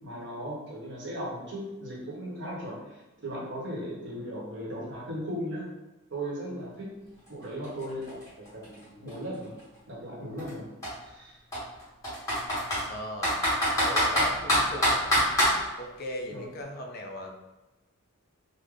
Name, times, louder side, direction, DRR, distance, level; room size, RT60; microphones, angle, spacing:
voice 1, 0.0-5.7 6.1-6.9 7.3-9.6 9.9-10.7 11.0-11.4 16.3-16.5, equal, 55° right, -4 dB, 1.0 m, -37 dB
Computer keyboard, 7.3-7.4 7.6-9.6 10.4-10.5 10.8-10.9 11.5-12.8 13.2-15.5, equal, 15° left, 1.4 m, -24 dB
voice 2, 12.9-13.3 13.7-15.2 15.8-17.3, left 1 dB, 45° left, 2 dB, 0.4 m, -38 dB
3.2 x 2.1 x 3.7 m, 1.1 s
head